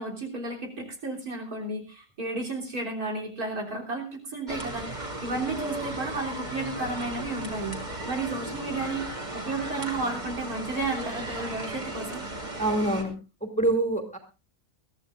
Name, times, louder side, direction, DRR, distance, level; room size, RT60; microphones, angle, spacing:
voice 1, 0.0-7.8 8.1-9.1 9.3-12.2, right 3 dB, 85° right, 0 dB, 4.1 m, -33 dB
sound 1, 4.5-13.0, right 1 dB, 30° right, 2.7 m, -36 dB
voice 2, 12.6-13.1 13.4-14.2, right 2 dB, 5° left, 4 dB, 2.6 m, -25 dB
22.5 x 14.5 x 2.6 m, 0.30 s
omnidirectional pair, 1.5 m